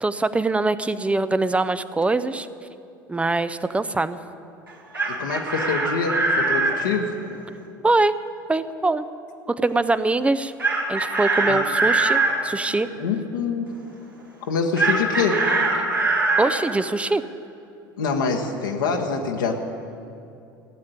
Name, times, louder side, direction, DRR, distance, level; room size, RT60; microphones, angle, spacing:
voice 1, 0.0-2.5 3.1-4.2 7.8-8.1 8.5-9.0 9.5-10.5 10.9-12.9 16.4-17.2, right 2 dB, 10° right, 13 dB, 0.5 m, -23 dB
Chicken rooster, 4.7-6.8 10.6-12.3 14.8-16.5, right 3 dB, 85° right, 2.3 m, -22 dB
voice 2, 5.1-7.2 11.4-11.6 13.0-13.7 14.5-15.5 18.0-19.6, left 5 dB, 70° left, 1 dB, 1.3 m, -25 dB
15.5 x 8.7 x 9.4 m, 2.6 s
figure-of-eight pair, 70°, 11 cm